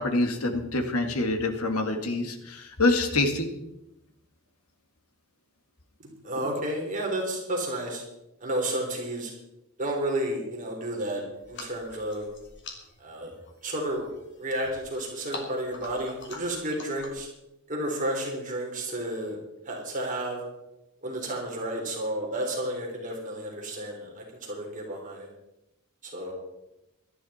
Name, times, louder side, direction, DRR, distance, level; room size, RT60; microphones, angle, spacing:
voice 1, 0.0-3.5, left 2 dB, 80° left, 6 dB, 2.2 m, -26 dB
voice 2, 6.0-8.0 8.4-9.3 9.8-12.2 13.0-13.3 13.6-14.1 14.4-17.3 17.7-19.4 19.7-20.4 21.0-25.3 26.0-26.3, right 1 dB, 35° right, 0 dB, 3.7 m, -31 dB
sound 1, 11.4-17.3, left 2 dB, 55° left, 3.3 m, -45 dB
18.0 x 12.5 x 4.3 m, 0.90 s
head